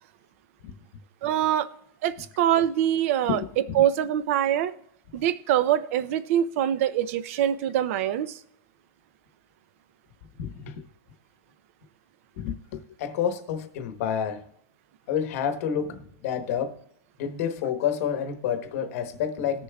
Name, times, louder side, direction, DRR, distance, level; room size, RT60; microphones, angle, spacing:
voice 1, 1.2-1.7 2.0-3.4 3.7-4.7 5.1-8.4, right 11 dB, 40° right, 0.5 m, -24 dB
voice 2, 3.3-3.8 10.4-10.9 12.4-14.4 15.1-16.8 17.2-19.6, left 8 dB, 40° left, 1.0 m, -29 dB
19.0 x 6.8 x 2.3 m
supercardioid pair, 170°, 12 cm